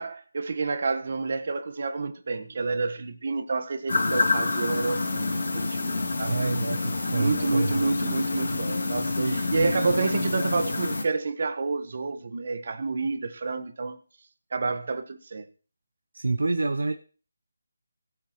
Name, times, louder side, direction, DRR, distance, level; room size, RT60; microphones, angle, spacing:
voice 1, 0.0-6.3 7.1-14.0 14.5-15.5, right 4 dB, 50° right, 1.4 m, -29 dB
sound 1, 3.9-11.0, left 3 dB, 70° left, 2.9 m, -27 dB
voice 2, 6.2-7.9 9.2-9.4 16.1-16.9, right 3 dB, 80° right, 1.0 m, -27 dB
17.5 x 8.7 x 3.1 m
figure-of-eight pair, 165°, 0 cm